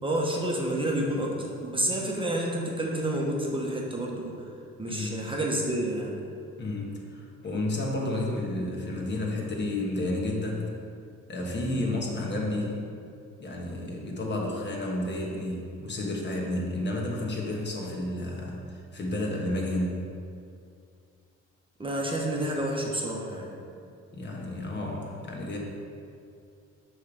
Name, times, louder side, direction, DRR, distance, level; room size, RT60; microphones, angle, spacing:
voice 1, 0.0-1.3 1.6-4.3 4.8-6.2 21.8-23.5, right 1 dB, 15° right, -2 dB, 1.0 m, -29 dB
voice 2, 4.9-5.2 6.6-10.6 11.3-12.8 13.4-20.1 24.1-25.6, left 1 dB, 35° left, -1 dB, 1.3 m, -31 dB
6.3 x 3.3 x 5.3 m, 2.4 s
cardioid pair, 90°, 30 cm